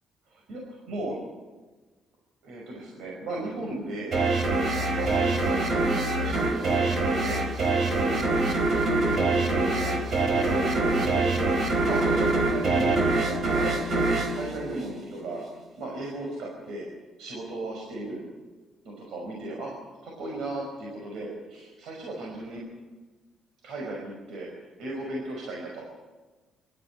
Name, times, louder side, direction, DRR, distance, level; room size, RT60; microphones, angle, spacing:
voice 1, 0.3-1.2 2.4-4.1 4.9-7.4 7.7-8.2 9.4-11.6 11.8-13.8 14.3-15.4 15.8-16.9 17.2-18.2 18.8-19.7 20.0-22.6 23.6-25.8, right 2 dB, 75° right, -1 dB, 5.4 m, -36 dB
sound 1, 4.1-15.4, right 2 dB, 50° right, 3.9 m, -25 dB
24.5 x 13.5 x 9.8 m, 1.3 s
cardioid pair, 140°, 0 cm